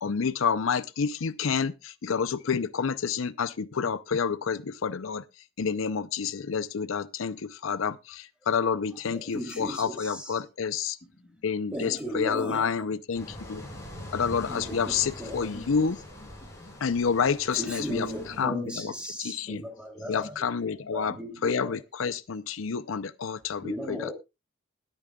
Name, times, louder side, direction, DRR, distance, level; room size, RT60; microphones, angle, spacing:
voice 1, 0.0-5.2 5.6-11.0 11.4-13.6 14.1-16.0 16.8-18.1 18.4-18.9 19.2-19.6 20.1-21.2 21.4-24.1, left 6 dB, 85° left, 0.6 m, -29 dB
voice 2, 9.1-10.4 11.7-12.9 14.5-15.9 17.5-20.5 20.9-21.8 22.0-22.1 23.6-24.1, equal, 5° right, 3.1 m, -36 dB
voice 3, 11.0-11.4 13.2-14.0 15.9-16.9 17.4-17.5 18.5-18.9 19.2-19.7 19.9-20.3, left 2 dB, 40° left, 1.8 m, -52 dB
sound 1, 13.1-18.4, left 1 dB, 15° left, 4.8 m, -43 dB
20.5 x 8.7 x 2.3 m
head